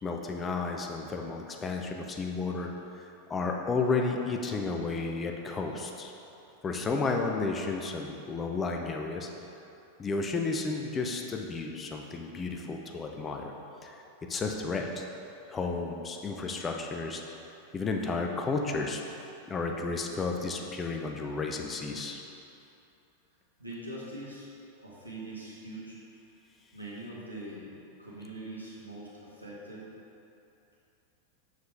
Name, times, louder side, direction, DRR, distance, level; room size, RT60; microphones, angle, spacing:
voice 1, 0.0-6.1 6.6-9.3 10.0-13.5 13.8-14.0 14.3-15.1 15.5-17.2 17.7-19.0 19.5-22.2, left 4 dB, 20° left, 2 dB, 0.6 m, -32 dB
voice 2, 23.6-24.5 24.8-26.0 26.7-27.7 28.0-29.9, right 1 dB, 85° right, -6 dB, 1.6 m, -42 dB
6.7 x 6.4 x 3.4 m, 2.8 s
figure-of-eight pair, 90°, 0 cm